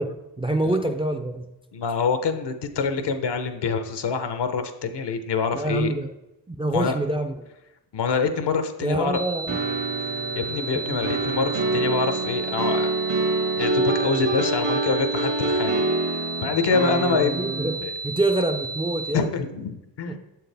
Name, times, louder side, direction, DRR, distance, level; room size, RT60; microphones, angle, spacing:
voice 1, 0.0-1.5 5.5-6.1 6.5-7.4 8.8-9.6 17.1-19.3 20.1-20.2, right 2 dB, 15° right, 6 dB, 0.4 m, -26 dB
voice 2, 1.7-5.9 6.7-7.0 7.9-9.2 10.0-12.9 13.6-15.8 16.1-17.4 17.8-17.9 19.1-20.2, left 5 dB, 70° left, 8 dB, 0.8 m, -26 dB
sound 1, 9.1-19.1, right 3 dB, 45° right, 0.7 m, -33 dB
sound 2, 9.5-17.7, right 2 dB, 75° right, 1.7 m, -26 dB
7.2 x 4.6 x 3.3 m, 0.93 s
cardioid pair, 70°, 42 cm